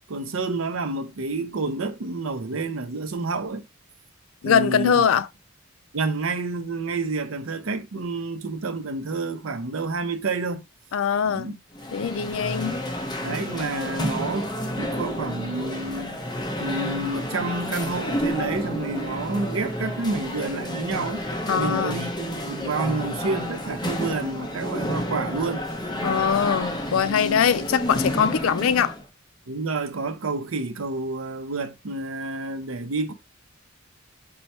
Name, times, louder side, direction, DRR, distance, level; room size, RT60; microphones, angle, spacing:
voice 1, 0.1-3.6 4.4-5.1 5.9-10.6 11.2-11.5 13.2-14.5 14.8-16.2 16.6-21.2 21.6-25.6 26.9-27.5 29.5-33.1, right 3 dB, 85° right, 0.6 m, -29 dB
voice 2, 4.4-5.3 10.9-11.6 11.9-12.8 21.5-22.0 26.0-28.9, left 7 dB, 80° left, 0.4 m, -22 dB
sound 1, 11.7-29.0, equal, 20° left, 0.8 m, -30 dB
4.6 x 2.1 x 4.2 m
head